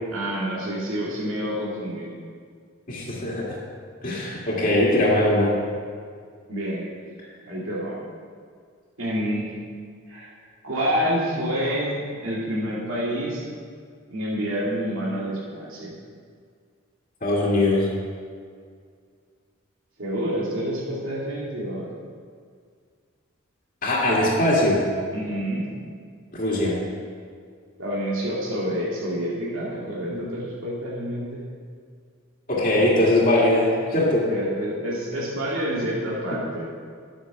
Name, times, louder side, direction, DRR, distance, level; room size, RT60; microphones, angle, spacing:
voice 1, 0.1-2.1 6.5-6.9 7.5-8.0 9.0-9.5 10.1-10.3 10.6-13.4 14.1-15.9 20.0-21.9 25.1-25.6 27.8-31.4 34.3-36.7, equal, 80° right, -6 dB, 2.3 m, -28 dB
voice 2, 2.9-3.6 4.0-5.6 17.2-17.9 23.8-24.8 26.3-26.8 30.1-30.2 32.5-34.3, left 1 dB, 40° left, -5 dB, 2.1 m, -21 dB
11.0 x 8.8 x 5.9 m, 2.1 s
head